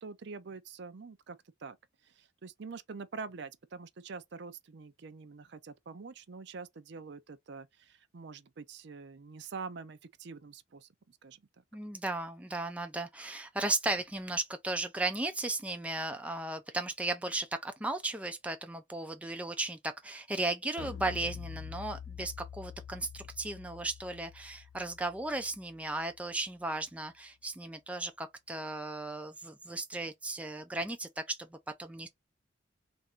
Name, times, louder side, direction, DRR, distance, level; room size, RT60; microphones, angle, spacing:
voice 1, 0.0-1.8 2.0-11.4, right 4 dB, 60° right, 0.5 m, -45 dB
voice 2, 11.7-32.1, right 2 dB, 5° right, 0.4 m, -36 dB
sound 1, 20.8-26.2, left 8 dB, 65° left, 0.4 m, -46 dB
3.4 x 2.5 x 4.3 m
head